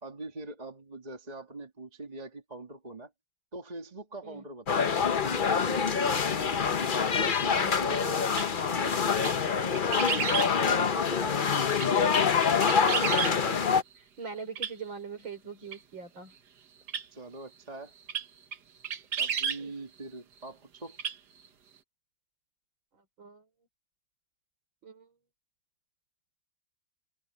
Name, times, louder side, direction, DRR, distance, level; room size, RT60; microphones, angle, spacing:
voice 1, 0.0-3.1 3.5-4.9 9.0-9.7 10.5-11.4 13.4-13.6 17.1-17.9 19.2-21.0, right 2 dB, 20° right, 2.0 m, -43 dB
sound 1, 4.7-13.8, left 6 dB, 45° left, 0.6 m, -26 dB
voice 2, 7.5-8.3 11.2-11.9 12.8-13.6 14.0-16.3 19.6-19.7 22.9-23.5 24.8-25.1, right 5 dB, 75° right, 5.7 m, -43 dB
sound 2, 8.3-8.5 9.2-9.3 9.7-10.5 11.6-11.9 12.4-13.3 14.5-14.7 15.7-15.8 16.9-17.0 18.1-18.2 18.5-18.6 18.8-19.6 20.9-21.2 21.4-21.5, right 7 dB, 60° right, 1.8 m, -31 dB
open air
omnidirectional pair, 2.1 m